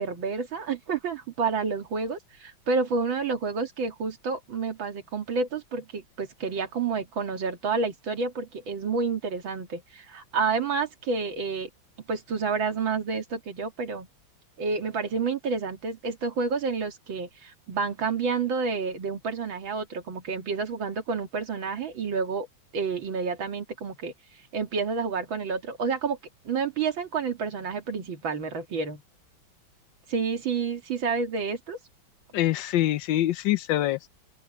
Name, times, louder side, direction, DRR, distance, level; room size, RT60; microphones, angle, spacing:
voice 1, 0.0-11.7 12.1-14.1 14.6-22.5 22.7-24.1 24.5-26.2 26.4-29.0 30.1-31.8, right 5 dB, 75° right, 2.8 m, -29 dB
voice 2, 32.3-34.1, left 14 dB, 75° left, 1.3 m, -25 dB
open air
omnidirectional pair, 2.2 m